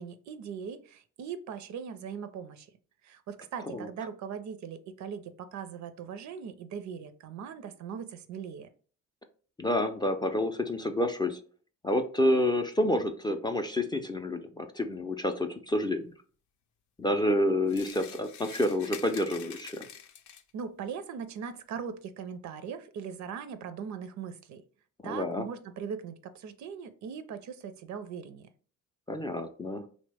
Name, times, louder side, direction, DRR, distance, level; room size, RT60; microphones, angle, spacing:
voice 1, 0.0-2.7 3.0-8.7 20.5-24.6 25.0-28.5, right 7 dB, 70° right, 11 dB, 0.5 m, -40 dB
voice 2, 9.6-11.4 11.8-16.1 17.0-19.9 25.0-25.5 29.1-29.8, left 1 dB, 15° left, 5 dB, 0.3 m, -28 dB
sound 1, 17.7-20.6, left 8 dB, 80° left, 0.5 m, -46 dB
3.0 x 2.1 x 3.3 m, 0.42 s
cardioid pair, 90°, 30 cm